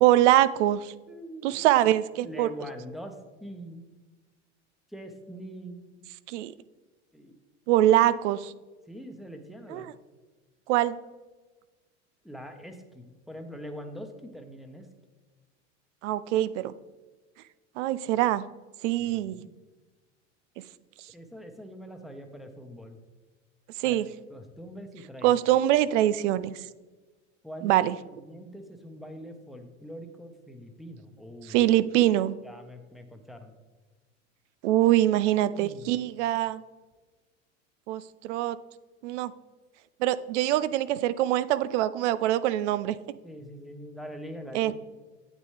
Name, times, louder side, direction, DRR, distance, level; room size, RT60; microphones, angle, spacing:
voice 1, 0.0-0.9 1.4-2.5 6.3-6.5 7.7-8.5 9.7-9.8 10.7-11.0 16.0-16.7 17.8-18.4 18.8-19.5 23.8-24.1 25.2-26.6 27.6-27.9 31.5-32.3 34.6-36.6 37.9-38.6 39.0-39.3 40.0-43.0 44.5-44.7, right 13 dB, 75° right, 16 dB, 0.5 m, -23 dB
voice 2, 1.1-1.6 2.2-3.8 4.9-6.1 7.1-7.4 8.9-9.9 12.2-14.9 19.0-19.5 21.1-23.0 23.8-24.0 24.3-25.3 27.4-31.7 32.4-33.5 35.6-36.0 43.2-44.7, equal, ahead, 4 dB, 1.0 m, -43 dB
8.9 x 7.3 x 3.3 m, 1.3 s
hypercardioid pair, 90°, 36 cm